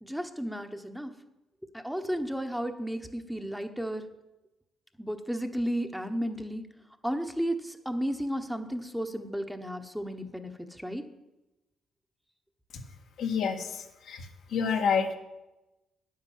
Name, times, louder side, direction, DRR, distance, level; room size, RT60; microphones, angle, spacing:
voice 1, 0.0-1.1 1.7-4.0 5.0-6.6 7.0-10.5 10.8-11.0, equal, ahead, 5 dB, 1.2 m, -33 dB
voice 2, 13.2-13.7 14.1-14.2 14.5-15.2, left 6 dB, 75° left, 2 dB, 1.8 m, -27 dB
9.7 x 9.4 x 7.5 m, 0.99 s
cardioid pair, 90°, 0 cm